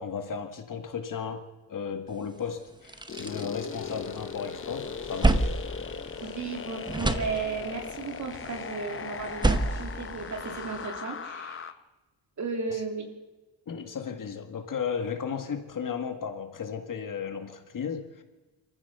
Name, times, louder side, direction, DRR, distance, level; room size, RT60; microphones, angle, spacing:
voice 1, 0.0-5.5 12.7-12.8 13.7-18.2, left 6 dB, 45° left, 6 dB, 1.9 m, -35 dB
sound 1, 2.2-2.3 2.7-4.4 4.7-6.6 6.8-7.9 9.2-10.8, right 2 dB, 10° right, 0.8 m, -29 dB
sound 2, 3.1-11.7, left 6 dB, 30° left, 0.8 m, -39 dB
sound 3, 3.7-10.9, left 5 dB, 90° left, 4.2 m, -46 dB
voice 2, 6.2-11.7 12.4-13.0, right 4 dB, 40° right, 3 dB, 3.1 m, -35 dB
26.0 x 14.5 x 6.9 m, 1.2 s
wide cardioid pair, 175°, 43 cm